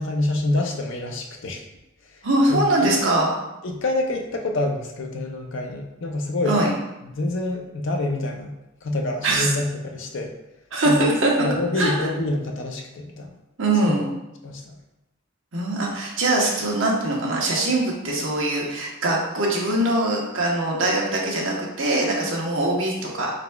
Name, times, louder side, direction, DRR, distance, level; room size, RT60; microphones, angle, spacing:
voice 1, 0.0-1.6 2.5-2.9 3.6-6.6 7.1-8.5 8.8-10.3 10.8-11.1 11.4-13.4 13.8-14.0 14.4-14.7, left 2 dB, 60° left, 3 dB, 0.5 m, -26 dB
voice 2, 2.2-3.3 6.4-6.7 9.2-9.5 10.7-11.5 11.8-11.9 13.6-14.1 15.5-23.3, right 2 dB, 65° right, -2 dB, 0.9 m, -22 dB
4.4 x 4.0 x 2.2 m, 0.93 s
head